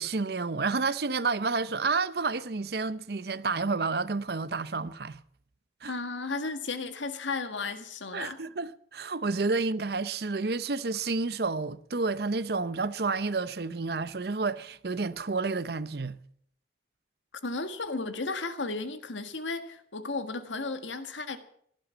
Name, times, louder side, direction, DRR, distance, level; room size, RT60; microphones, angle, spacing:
voice 1, 0.0-5.2 5.8-5.9 8.1-16.2, right 4 dB, 55° right, 0.7 m, -30 dB
voice 2, 5.9-8.4 17.4-21.4, left 3 dB, 85° left, 1.8 m, -34 dB
16.5 x 12.0 x 7.2 m
head